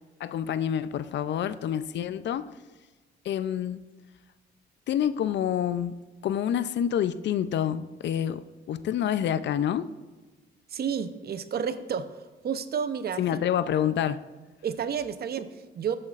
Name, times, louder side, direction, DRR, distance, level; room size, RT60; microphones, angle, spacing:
voice 1, 0.2-2.5 3.2-3.8 4.9-9.9 13.2-14.2, left 9 dB, 65° left, 14 dB, 0.5 m, -28 dB
voice 2, 10.7-13.4 14.6-16.0, right 7 dB, 50° right, 11 dB, 0.7 m, -31 dB
14.0 x 8.7 x 2.5 m, 1.3 s
cardioid pair, 90°, 20 cm